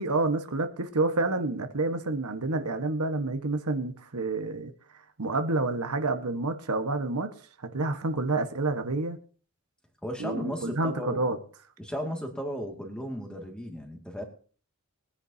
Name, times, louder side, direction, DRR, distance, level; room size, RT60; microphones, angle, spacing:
voice 1, 0.0-4.7 5.2-7.3 7.6-9.2 10.2-11.4, right 2 dB, 85° right, 1.3 m, -28 dB
voice 2, 10.0-11.3 11.8-14.2, equal, 5° left, 2.1 m, -35 dB
21.5 x 10.0 x 2.8 m
head